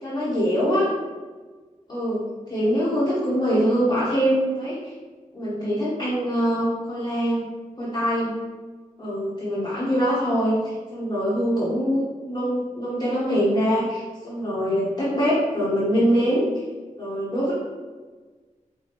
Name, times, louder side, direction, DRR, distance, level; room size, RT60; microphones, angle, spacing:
voice 1, 0.0-0.9 1.9-4.9 5.3-7.5 7.8-8.4 9.0-16.4 17.0-17.5, equal, 30° left, -9 dB, 1.0 m, -23 dB
5.0 x 2.2 x 2.9 m, 1.4 s
wide cardioid pair, 105°, 13 cm